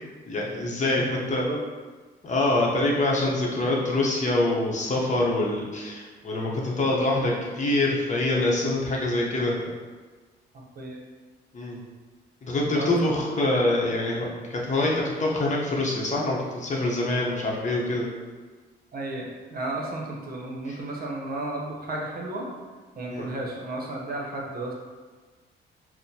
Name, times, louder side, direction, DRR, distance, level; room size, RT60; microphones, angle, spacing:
voice 1, 0.3-1.5 2.2-9.5 11.5-11.8 12.4-18.1 20.7-20.8 23.1-23.3, left 2 dB, 35° left, -3 dB, 0.8 m, -25 dB
voice 2, 0.9-1.6 10.5-11.0 12.6-13.2 18.9-22.5 23.0-24.7, right 2 dB, 50° right, -1 dB, 0.9 m, -33 dB
6.2 x 2.1 x 2.8 m, 1.4 s
cardioid pair, 90°, 20 cm